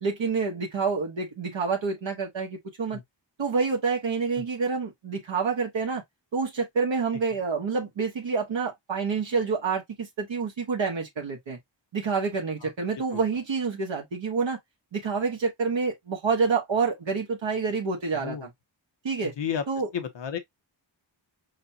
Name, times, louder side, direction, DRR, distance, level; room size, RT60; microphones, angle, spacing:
voice 1, 0.0-3.0 3.4-6.0 6.3-11.6 11.9-14.6 14.9-18.5 19.0-19.3 19.7-19.9, right 5 dB, 75° right, 1.2 m, -28 dB
voice 2, 18.1-18.5 19.2-19.6 19.9-20.4, left 8 dB, 70° left, 0.9 m, -32 dB
6.4 x 2.2 x 2.7 m
wide cardioid pair, 95°, 45 cm